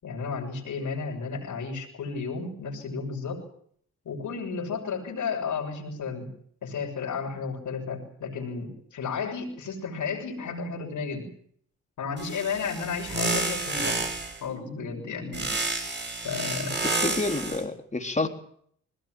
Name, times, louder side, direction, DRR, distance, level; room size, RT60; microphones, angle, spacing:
voice 1, 0.0-3.4 4.0-6.3 6.6-11.3 12.0-14.0 14.4-15.6 16.2-16.8, left 5 dB, 75° left, 0 dB, 6.7 m, -33 dB
sound 1, 12.2-14.4 15.3-17.6, right 2 dB, 35° right, 6.6 m, -30 dB
voice 2, 16.8-18.3, left 2 dB, 25° left, 4 dB, 3.7 m, -29 dB
21.5 x 18.0 x 9.3 m, 0.65 s
cardioid pair, 65°, 31 cm